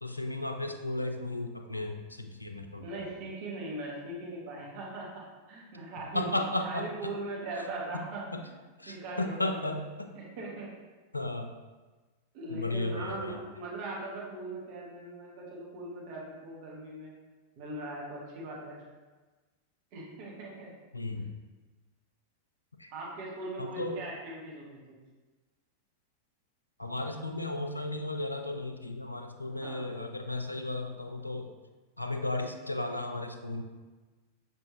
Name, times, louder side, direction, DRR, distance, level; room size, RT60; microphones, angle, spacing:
voice 1, 0.0-3.1 6.1-7.1 8.3-8.4 8.8-10.1 11.1-11.5 12.5-13.4 20.9-21.3 22.8-22.9 23.6-24.0 26.8-31.5 32.0-33.6, left 2 dB, 85° left, 4 dB, 0.3 m, -34 dB
voice 2, 2.8-6.3 6.6-8.5 8.9-9.7 10.1-10.7 12.3-17.1 17.6-18.8 19.9-20.7 22.9-24.9 29.6-29.9, right 2 dB, 45° right, -4 dB, 1.1 m, -40 dB
5.7 x 2.2 x 2.9 m, 1.3 s
figure-of-eight pair, 90°, 0 cm